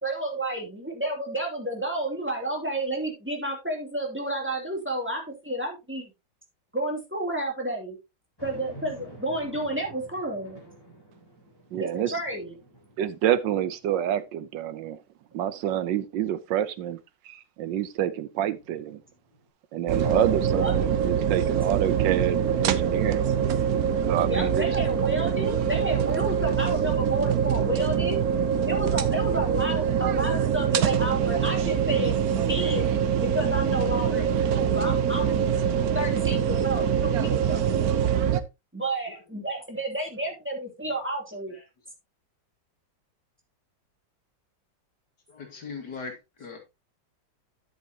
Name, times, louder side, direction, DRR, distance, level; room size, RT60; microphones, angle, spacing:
voice 1, 0.0-6.1 6.7-8.0 8.4-10.6 11.8-12.5 20.5-20.7 24.2-28.2 28.6-32.8 33.2-35.5 35.8-37.7 38.7-41.5, right 1 dB, 5° right, 2.9 m, -31 dB
sound 1, 8.4-13.9 14.4-14.5 18.4-19.5, equal, 10° left, 3.8 m, -49 dB
voice 2, 11.7-12.2 13.0-15.0 15.3-17.0 17.2-19.0 19.7-23.3 24.1-24.7 26.2-26.3, right 11 dB, 80° right, 1.4 m, -28 dB
sound 2, 19.9-38.4, right 8 dB, 65° right, 1.1 m, -24 dB
voice 3, 45.3-46.6, left 4 dB, 65° left, 2.7 m, -40 dB
10.0 x 8.0 x 2.9 m
omnidirectional pair, 2.0 m